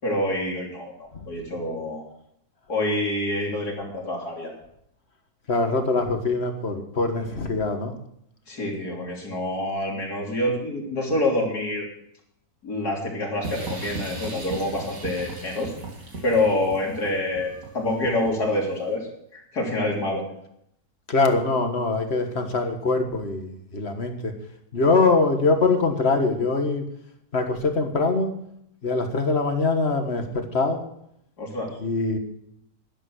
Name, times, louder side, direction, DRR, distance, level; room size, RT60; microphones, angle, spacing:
voice 1, 0.0-2.0 2.7-4.5 8.5-11.8 12.6-15.7 16.2-20.2 31.4-31.8, left 1 dB, 80° left, -1 dB, 4.0 m, -27 dB
voice 2, 5.5-7.9 21.1-24.3 24.7-26.8 27.3-28.3 28.8-30.8 31.8-32.2, left 3 dB, 45° left, 6 dB, 1.8 m, -23 dB
sound 1, 13.4-18.6, right 2 dB, 60° right, 3.2 m, -37 dB
11.5 x 11.0 x 6.3 m, 0.74 s
omnidirectional pair, 1.7 m